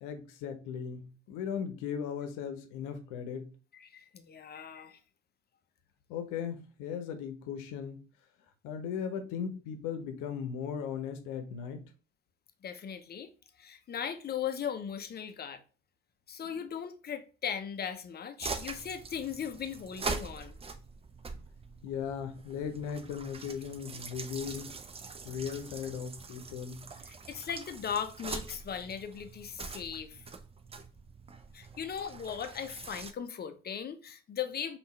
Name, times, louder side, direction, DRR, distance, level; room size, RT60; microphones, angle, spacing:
voice 1, 0.0-3.5 6.1-8.0 8.6-11.8 21.8-24.7 25.2-26.8, left 7 dB, 60° left, 0.9 m, -37 dB
voice 2, 3.7-5.0 12.6-13.3 13.6-15.6 16.3-20.6 27.1-30.2 31.5-34.8, left 8 dB, 25° left, 0.7 m, -38 dB
sound 1, 18.4-33.1, right 4 dB, 15° right, 0.5 m, -43 dB
5.3 x 2.6 x 3.2 m
figure-of-eight pair, 50°, 35 cm